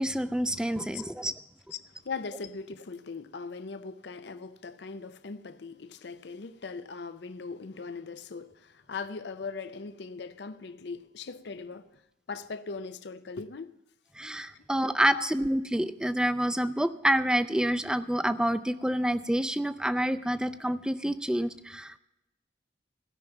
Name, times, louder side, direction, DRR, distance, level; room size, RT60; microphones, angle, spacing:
voice 1, 0.0-1.3 14.2-22.0, equal, 5° right, 0.4 m, -28 dB
voice 2, 1.7-12.0 12.3-13.8 14.5-14.7 15.1-15.3, left 4 dB, 70° left, 0.6 m, -40 dB
16.0 x 5.9 x 7.9 m
head